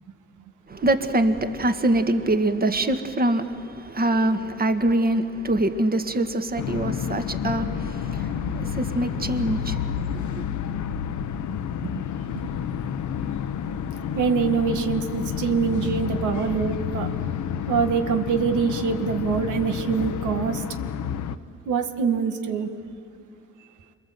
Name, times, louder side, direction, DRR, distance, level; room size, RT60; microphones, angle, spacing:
voice 1, 0.7-10.4, right 1 dB, 30° right, 1.8 m, -24 dB
sound 1, 6.6-21.4, left 8 dB, 70° left, 0.9 m, -29 dB
voice 2, 14.1-17.1 17.7-20.6 21.7-22.7, right 6 dB, 75° right, 1.8 m, -24 dB
27.5 x 22.0 x 7.8 m
cardioid pair, 90°, 30 cm